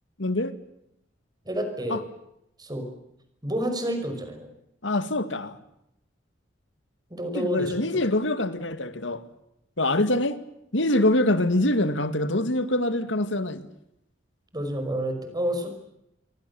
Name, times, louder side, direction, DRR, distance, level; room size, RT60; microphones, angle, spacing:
voice 1, 0.2-0.5 1.9-2.0 4.8-5.6 7.4-9.2 9.8-10.4 10.7-13.6, left 1 dB, 80° left, 2.1 m, -24 dB
voice 2, 1.5-2.0 2.6-2.9 3.4-4.5 7.1-8.0 14.5-15.7, equal, 20° right, 5.8 m, -29 dB
27.0 x 23.0 x 7.1 m
head